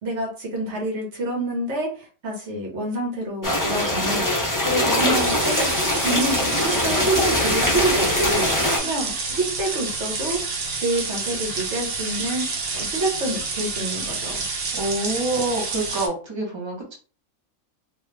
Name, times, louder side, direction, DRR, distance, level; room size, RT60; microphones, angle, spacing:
voice 1, 0.0-5.7 6.0-8.5 8.8-10.4 10.8-12.5 12.7-14.4, right 1 dB, 60° right, -1 dB, 1.4 m, -27 dB
sound 1, 3.4-8.8, left 1 dB, 20° left, 0.7 m, -22 dB
sound 2, 5.1-16.1, right 4 dB, 75° right, 1.2 m, -29 dB
voice 2, 14.7-16.9, right 2 dB, 25° right, -2 dB, 0.9 m, -26 dB
2.9 x 2.3 x 3.2 m, 0.38 s
omnidirectional pair, 1.4 m